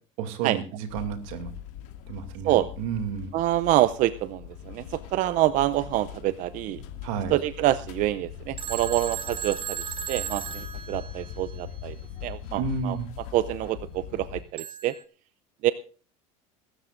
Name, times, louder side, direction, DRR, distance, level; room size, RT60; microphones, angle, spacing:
voice 1, 0.2-1.5 2.1-3.3 7.0-7.4 12.6-13.1, right 6 dB, 75° right, 7 dB, 2.5 m, -31 dB
sound 1, 0.9-14.4, left 9 dB, 80° left, 2.3 m, -41 dB
voice 2, 3.3-6.8 7.3-12.0 12.2-13.0 13.3-14.9 15.6-15.7, right 15 dB, 50° right, 14 dB, 0.6 m, -26 dB
Telephone, 8.6-11.6 14.6-15.0, right 9 dB, 30° right, 1.1 m, -35 dB
23.0 x 13.0 x 2.6 m, 0.40 s
supercardioid pair, 130°, 17 cm